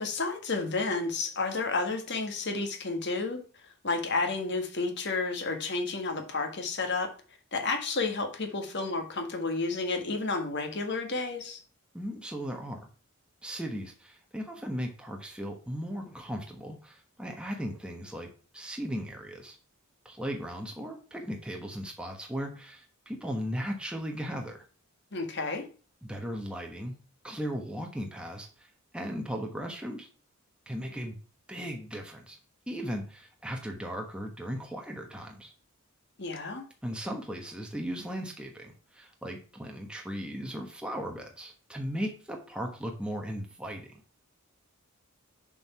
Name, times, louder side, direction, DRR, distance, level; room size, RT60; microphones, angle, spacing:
voice 1, 0.0-3.4 3.8-7.1 7.5-11.6 25.1-25.7 36.2-36.6, left 3 dB, 50° left, 5 dB, 1.6 m, -31 dB
voice 2, 11.9-12.9 13.4-19.6 20.0-24.6 26.0-27.0 27.2-28.7 28.9-30.1 30.7-31.2 31.5-32.4 32.7-35.5 36.8-43.9, equal, 5° right, 2 dB, 1.1 m, -37 dB
7.2 x 4.7 x 5.7 m, 0.39 s
head